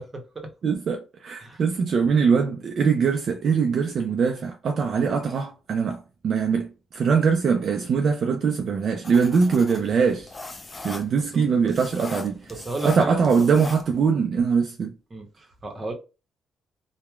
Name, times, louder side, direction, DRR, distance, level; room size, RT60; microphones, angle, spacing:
voice 1, 0.0-0.5 1.4-1.6 10.9-11.7 12.5-13.2 15.1-15.9, right 2 dB, 30° right, 0.8 m, -34 dB
voice 2, 0.6-10.3 10.8-12.4 12.8-14.9, right 5 dB, 55° right, 0.4 m, -22 dB
sound 1, 9.0-14.1, left 3 dB, 25° left, 0.5 m, -41 dB
2.9 x 2.1 x 2.3 m
cardioid pair, 90°, 0 cm